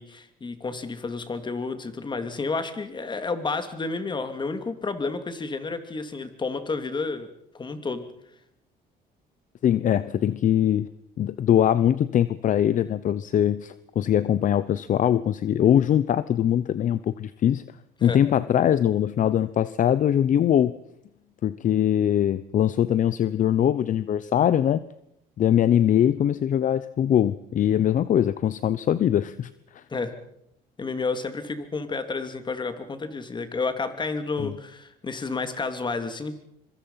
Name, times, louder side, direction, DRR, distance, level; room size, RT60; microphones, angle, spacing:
voice 1, 0.0-7.3 7.5-8.0 18.0-18.2 29.9-30.1 30.8-36.4, left 4 dB, 25° left, 8 dB, 3.0 m, -31 dB
voice 2, 9.6-10.9 11.2-17.6 18.0-20.7 21.4-24.8 25.4-29.5 29.7-29.8 34.4-34.5, left 10 dB, 50° left, 15 dB, 0.9 m, -22 dB
25.0 x 24.0 x 5.8 m, 0.77 s
cardioid pair, 110°, 17 cm